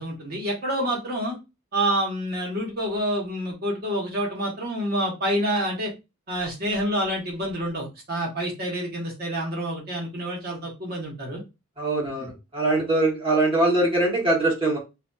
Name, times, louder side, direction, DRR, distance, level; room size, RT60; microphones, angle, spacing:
voice 1, 0.0-1.4 1.7-5.9 6.3-11.4 12.2-12.3, equal, 50° right, -2 dB, 1.1 m, -28 dB
voice 2, 11.8-14.8, right 2 dB, 25° right, -4 dB, 1.1 m, -22 dB
2.6 x 2.5 x 2.2 m, 0.25 s
head